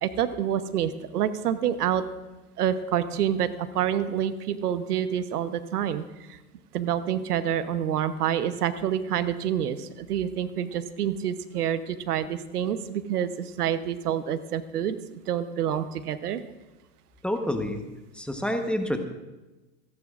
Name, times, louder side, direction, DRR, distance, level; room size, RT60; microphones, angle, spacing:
voice 1, 0.0-2.0 2.6-6.0 6.3-6.4 6.7-16.4, right 9 dB, 85° right, 12 dB, 1.0 m, -27 dB
voice 2, 17.2-17.8 18.1-19.0, left 1 dB, ahead, 5 dB, 1.0 m, -28 dB
28.0 x 11.0 x 2.5 m, 1.1 s
hypercardioid pair, 110°, 45 cm